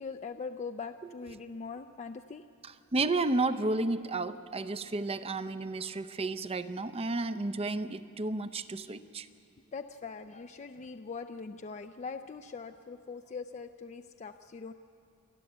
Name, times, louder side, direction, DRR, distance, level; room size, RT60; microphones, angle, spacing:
voice 1, 0.0-2.4 9.7-14.7, left 5 dB, 30° left, 7 dB, 0.4 m, -42 dB
voice 2, 2.6-9.3, right 2 dB, 25° right, 12 dB, 0.6 m, -32 dB
28.5 x 12.0 x 8.0 m, 2.7 s
head